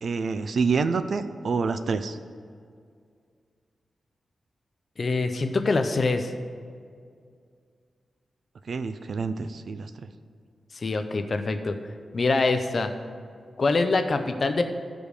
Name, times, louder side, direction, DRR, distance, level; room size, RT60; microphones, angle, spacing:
voice 1, 0.0-2.2 8.7-9.9, right 4 dB, 55° right, 10 dB, 0.4 m, -27 dB
voice 2, 5.0-6.3 10.7-11.8 12.1-12.9 13.6-14.6, left 3 dB, 40° left, 8 dB, 0.6 m, -24 dB
15.0 x 5.2 x 4.9 m, 2.2 s
wide cardioid pair, 160°, 0 cm